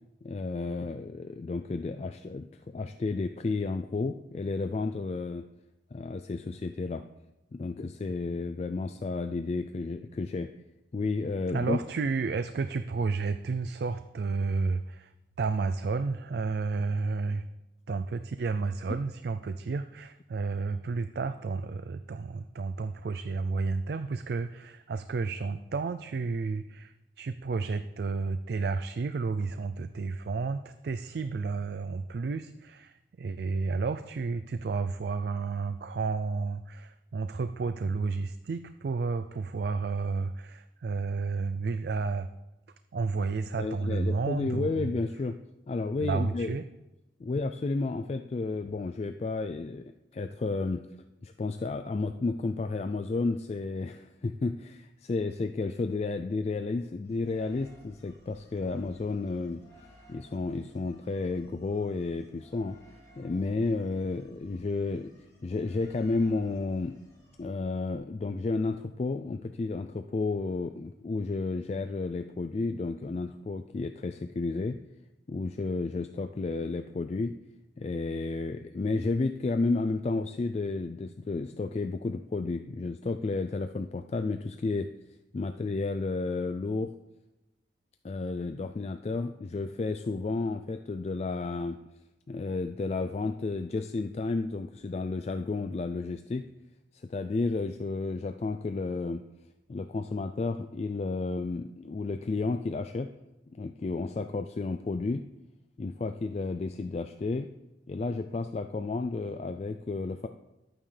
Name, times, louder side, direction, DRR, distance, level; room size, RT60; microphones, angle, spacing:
voice 1, 0.2-5.4 5.9-7.0 7.5-10.5 10.9-11.8 43.6-45.4 45.7-46.5 47.2-50.8 51.2-59.6 60.1-62.8 63.2-67.0 67.4-74.8 75.3-77.4 77.8-84.9 85.3-86.9 88.0-91.8 92.3-96.4 96.9-99.2 99.7-103.1 103.5-105.2 105.8-107.5 107.9-110.3, left 3 dB, 35° left, 8 dB, 0.3 m, -32 dB
voice 2, 11.5-15.1 15.4-17.5 17.9-42.3 42.9-45.0 46.0-46.6, right 4 dB, 60° right, 10 dB, 0.4 m, -31 dB
sound 1, 57.0-68.0, equal, 15° left, 2.5 m, -58 dB
11.5 x 8.9 x 3.3 m, 0.97 s
head